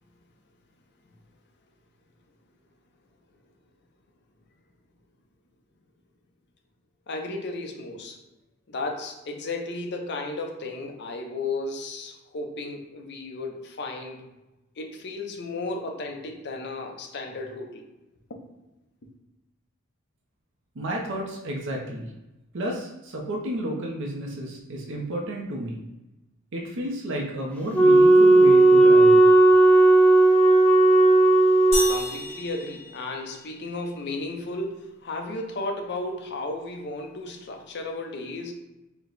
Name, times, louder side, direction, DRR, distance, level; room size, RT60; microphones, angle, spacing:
voice 1, 7.1-8.2 8.7-14.2 14.8-17.9 18.3-18.4 31.9-38.5, left 2 dB, 55° left, 0.6 m, -34 dB
voice 2, 20.8-22.1 22.5-25.8 26.5-29.2, right 1 dB, 60° right, 0.6 m, -32 dB
Wind instrument woodwind instrument, 27.7-32.0, right 2 dB, 5° left, 0.4 m, -15 dB
sound 1, 31.7-33.6, left 1 dB, 30° left, 1.4 m, -32 dB
4.5 x 2.2 x 3.9 m
head